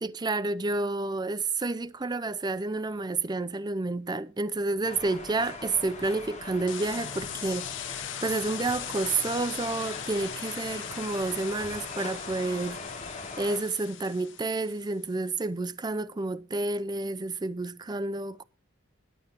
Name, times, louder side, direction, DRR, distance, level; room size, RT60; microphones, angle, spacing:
voice 1, 0.0-7.7 8.2-12.8 13.4-18.4, right 3 dB, 20° right, 0.5 m, -30 dB
sound 1, 4.8-13.6, left 3 dB, 35° left, 3.8 m, -41 dB
sound 2, 6.7-14.9, left 9 dB, 65° left, 1.0 m, -40 dB
21.0 x 7.9 x 2.9 m
head